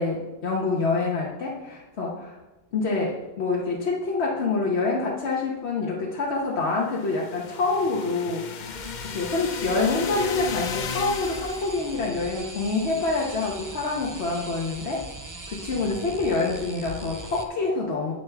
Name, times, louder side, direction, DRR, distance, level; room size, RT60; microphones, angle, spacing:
voice 1, 0.0-2.4 2.7-8.8 9.1-15.0 15.5-18.1, left 3 dB, 85° left, -3 dB, 1.4 m, -26 dB
sound 1, 6.9-11.9, left 6 dB, 55° left, 0.7 m, -35 dB
sound 2, 8.6-17.4, right 2 dB, 20° right, 0.7 m, -40 dB
9.5 x 8.9 x 3.5 m, 1.1 s
omnidirectional pair, 1.1 m